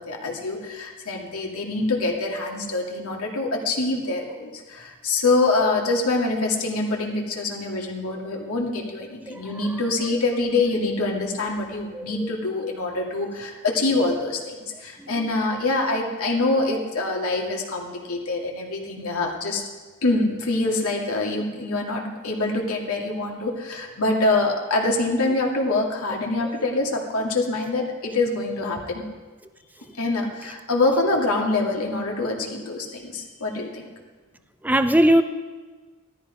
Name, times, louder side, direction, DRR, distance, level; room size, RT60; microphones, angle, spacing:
voice 1, 0.0-19.6 20.0-29.0 30.0-33.9, left 2 dB, 85° left, 0 dB, 2.2 m, -25 dB
voice 2, 11.9-12.3 15.0-15.3 26.4-26.5 34.6-35.2, right 1 dB, 10° right, 10 dB, 0.5 m, -20 dB
16.0 x 13.0 x 5.1 m, 1.4 s
head